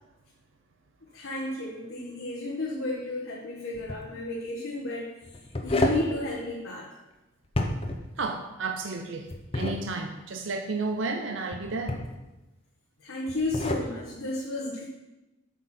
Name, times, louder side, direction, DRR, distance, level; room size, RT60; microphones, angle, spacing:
voice 1, 1.1-6.9 13.0-14.8, left 1 dB, 85° left, -4 dB, 1.3 m, -32 dB
sound 1, 3.7-4.0 5.2-6.1 7.4-8.0 9.3-9.8 11.5-12.2 13.3-13.9, left 2 dB, 30° left, 0.7 m, -29 dB
voice 2, 8.2-12.0, right 3 dB, 70° right, 5 dB, 0.6 m, -32 dB
8.0 x 6.3 x 4.3 m, 1.0 s
head